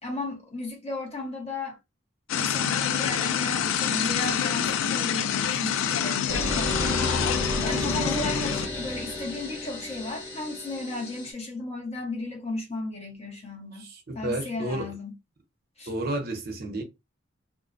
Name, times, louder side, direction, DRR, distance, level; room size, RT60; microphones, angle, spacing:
voice 1, 0.0-1.8 2.3-7.0 7.6-13.9 14.1-15.1 15.8-15.9, left 2 dB, 35° left, 0.9 m, -35 dB
sound 1, 2.3-8.7, left 8 dB, 85° left, 0.3 m, -27 dB
sound 2, 6.3-11.3, left 2 dB, 60° left, 1.0 m, -32 dB
voice 2, 13.8-14.9 15.9-16.8, right 1 dB, 50° right, 0.7 m, -31 dB
2.4 x 2.1 x 2.5 m
head